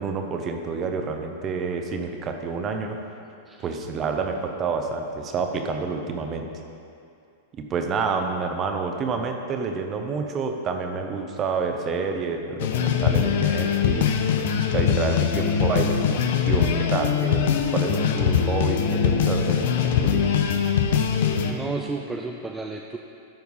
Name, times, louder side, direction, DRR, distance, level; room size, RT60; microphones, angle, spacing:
voice 1, 0.0-3.0 3.6-6.5 7.6-14.1 14.7-16.0 16.4-20.4, right 5 dB, 30° right, 4 dB, 1.0 m, -28 dB
sound 1, 12.6-21.5, left 7 dB, 65° left, 0.8 m, -22 dB
voice 2, 21.4-23.0, right 3 dB, 10° right, 2 dB, 0.5 m, -32 dB
13.0 x 4.6 x 5.6 m, 2.5 s
hypercardioid pair, 130°, 0 cm